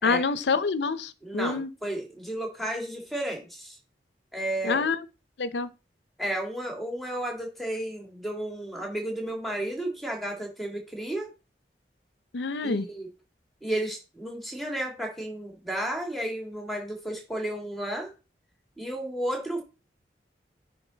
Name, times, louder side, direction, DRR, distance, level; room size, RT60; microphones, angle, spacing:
voice 1, 0.0-1.7 4.6-5.0 5.4-5.7 12.3-12.9, left 4 dB, 85° left, 0.6 m, -26 dB
voice 2, 1.2-3.8 4.3-4.8 6.2-11.3 12.6-13.1 13.6-18.1 18.8-19.6, right 1 dB, ahead, 2.0 m, -33 dB
10.0 x 3.9 x 3.9 m
head